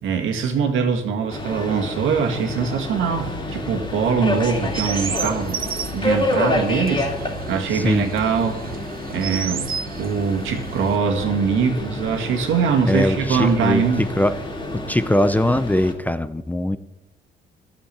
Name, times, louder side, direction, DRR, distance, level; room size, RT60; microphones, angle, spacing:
voice 1, 0.0-7.1 7.5-8.6 9.1-9.7 10.0-14.0, right 6 dB, 80° right, 4 dB, 1.9 m, -22 dB
Subway metro underground, 1.3-15.9, left 1 dB, 25° left, 2.7 m, -29 dB
Chirp tweet, 4.3-11.0, right 7 dB, 45° right, 0.8 m, -33 dB
voice 2, 7.7-8.1 12.9-14.3 14.7-16.8, left 1 dB, 10° left, 12 dB, 0.6 m, -21 dB
12.0 x 7.3 x 8.2 m, 0.98 s
cardioid pair, 90°, 20 cm